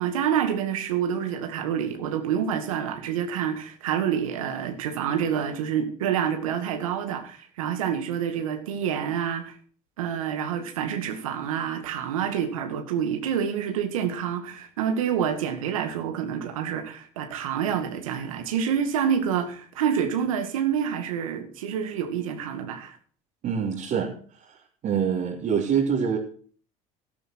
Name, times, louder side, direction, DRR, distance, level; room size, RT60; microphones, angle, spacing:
voice 1, 0.0-9.6 10.0-23.0, right 8 dB, 85° right, 6 dB, 2.1 m, -27 dB
voice 2, 23.4-24.1 24.8-26.2, right 7 dB, 55° right, -2 dB, 3.2 m, -25 dB
12.5 x 12.0 x 4.5 m, 0.44 s
hypercardioid pair, 70°, 17 cm